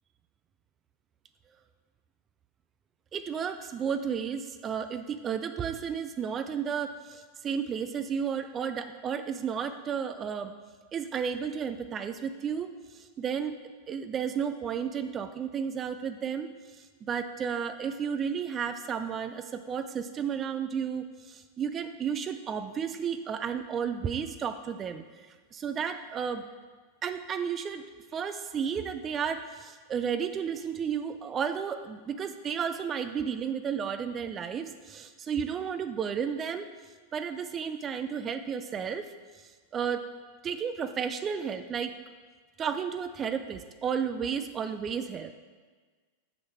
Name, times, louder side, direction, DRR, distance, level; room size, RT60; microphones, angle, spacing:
voice 1, 3.1-10.5 10.9-13.6 13.9-16.5 16.8-25.3 25.5-26.4 27.0-27.8 28.1-36.7 37.1-39.1 39.4-40.1 40.4-41.9 42.6-45.3, right 7 dB, 25° right, 9 dB, 0.4 m, -33 dB
7.2 x 6.3 x 4.6 m, 1.4 s
figure-of-eight pair, 90°, 0 cm